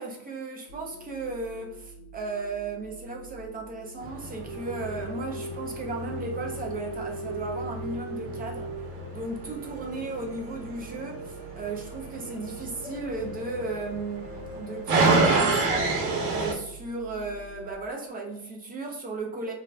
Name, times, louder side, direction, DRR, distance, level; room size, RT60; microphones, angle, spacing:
voice 1, 0.0-8.8 9.1-16.0 16.3-19.5, right 3 dB, 25° right, 0.3 m, -35 dB
sound 1, 0.7-17.8, right 4 dB, 60° left, 0.7 m, -47 dB
sound 2, 4.0-16.5, right 3 dB, 65° right, 0.8 m, -30 dB
sound 3, 4.5-15.3, right 3 dB, 5° right, 1.0 m, -40 dB
2.4 x 2.2 x 3.2 m
cardioid pair, 135°, 41 cm